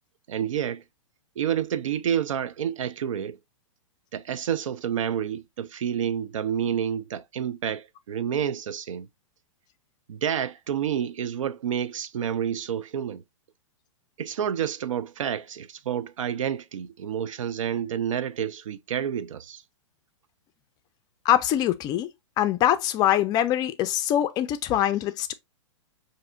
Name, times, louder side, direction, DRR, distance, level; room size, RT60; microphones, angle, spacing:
voice 1, 0.3-0.8 1.4-3.4 4.1-9.1 10.1-13.2 14.2-19.6, right 9 dB, 80° right, 0.4 m, -29 dB
voice 2, 21.2-22.1 22.4-25.3, left 12 dB, 25° left, 0.4 m, -23 dB
5.3 x 2.6 x 2.5 m
hypercardioid pair, 130°, 16 cm